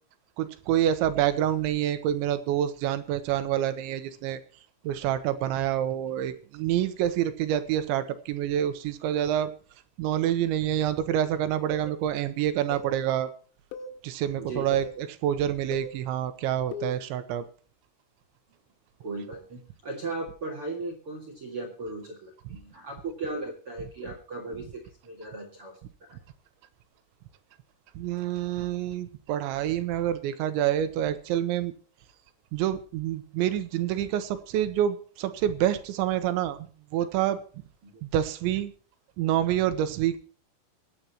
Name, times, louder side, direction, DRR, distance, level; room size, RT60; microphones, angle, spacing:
voice 1, 0.4-4.4 4.8-9.5 10.0-13.3 14.0-17.4 28.0-31.7 32.5-36.7 36.9-37.4 38.0-38.7 39.2-40.2, right 11 dB, 75° right, 11 dB, 3.1 m, -27 dB
sound 1, 11.7-12.0 12.7-13.0 13.7-14.0 14.7-15.0 15.7-16.0 16.7-17.0, left 3 dB, 80° left, 3.7 m, -38 dB
voice 2, 14.4-14.8 19.0-25.8 26.1-26.2 37.8-37.9, right 2 dB, 50° right, 1 dB, 1.7 m, -37 dB
24.0 x 9.7 x 3.0 m, 0.41 s
omnidirectional pair, 5.8 m